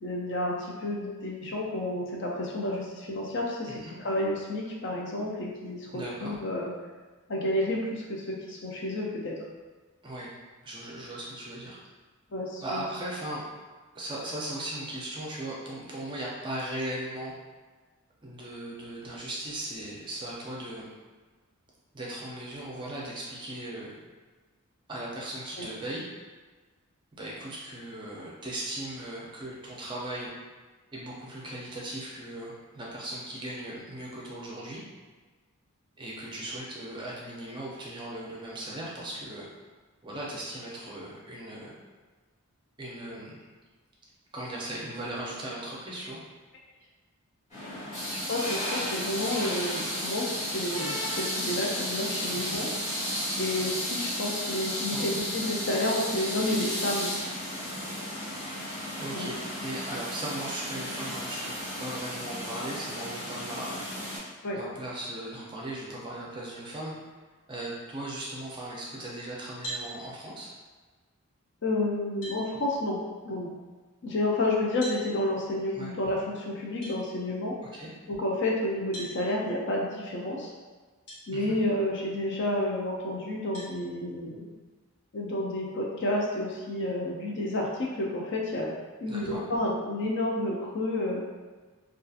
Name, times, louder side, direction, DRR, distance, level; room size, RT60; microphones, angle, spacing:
voice 1, 0.0-3.7 4.0-6.7 7.3-9.4 12.3-12.8 25.6-25.7 48.1-52.7 53.4-57.1 59.1-59.3 64.4-64.6 71.6-73.5 74.0-77.6 78.1-80.5 81.3-84.5 85.1-88.7 89.0-91.2, left 1 dB, 50° left, -2 dB, 0.4 m, -30 dB
voice 2, 5.9-6.4 10.0-10.3 10.6-11.8 12.6-13.4 13.9-17.3 18.2-20.9 21.9-24.0 24.9-26.0 27.2-30.3 30.9-34.8 36.0-39.5 40.0-41.7 42.8-43.5 44.3-46.2 52.3-52.6 54.9-55.1 59.0-63.8 64.5-66.9 67.5-70.5 75.7-75.9 77.7-77.9 81.3-81.6 89.1-89.4, right 1 dB, 20° right, -4 dB, 0.4 m, -38 dB
sound 1, 47.5-64.2, equal, 35° left, 1.1 m, -33 dB
sound 2, 69.6-69.9 71.6-71.7 72.2-72.4 74.8-75.0 76.8-77.0 78.9-79.1 81.1-81.2 81.9-82.0 83.5-83.7, right 1 dB, 75° left, 1.1 m, -38 dB
2.7 x 2.4 x 2.3 m, 1.3 s
head